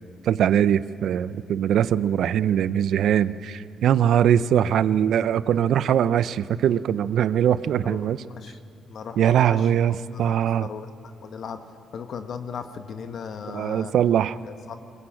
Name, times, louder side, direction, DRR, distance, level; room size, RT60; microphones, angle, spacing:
voice 1, 0.2-8.2 9.2-10.7 13.5-14.4, right 9 dB, 70° right, 16 dB, 0.6 m, -21 dB
voice 2, 7.8-8.6 8.9-10.9 11.2-11.6 11.9-13.9 14.4-14.8, left 6 dB, 60° left, 7 dB, 1.3 m, -37 dB
21.0 x 20.5 x 8.7 m, 2.5 s
cardioid pair, 90°, 0 cm